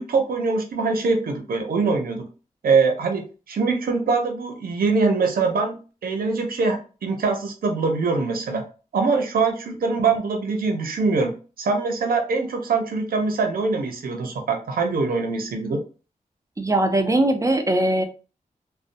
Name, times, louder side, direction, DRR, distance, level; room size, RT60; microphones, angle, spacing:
voice 1, 0.0-2.2 2.6-8.6 8.9-11.3 11.6-15.8, right 4 dB, 90° right, 3 dB, 0.6 m, -23 dB
voice 2, 16.6-18.0, right 1 dB, 20° right, 6 dB, 0.5 m, -20 dB
2.6 x 2.0 x 2.5 m, 0.35 s
cardioid pair, 50°, 15 cm